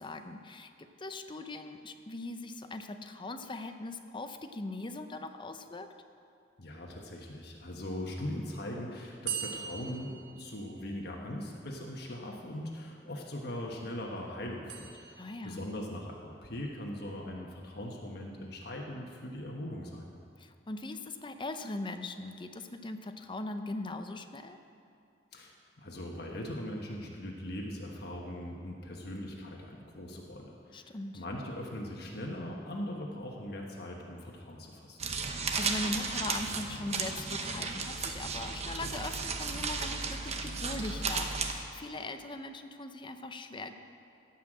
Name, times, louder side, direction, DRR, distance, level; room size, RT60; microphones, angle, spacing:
voice 1, 0.0-5.9 15.2-15.6 20.4-24.6 30.7-31.2 35.6-43.7, left 2 dB, 25° left, 7 dB, 0.7 m, -40 dB
voice 2, 6.6-20.1 25.3-35.0, left 1 dB, 60° left, -1 dB, 1.3 m, -40 dB
sound 1, 9.3-11.2 14.7-15.7, right 8 dB, 75° right, 0.9 m, -41 dB
sound 2, 35.0-41.5, right 4 dB, 40° right, 0.9 m, -34 dB
16.0 x 5.7 x 7.6 m, 2.4 s
head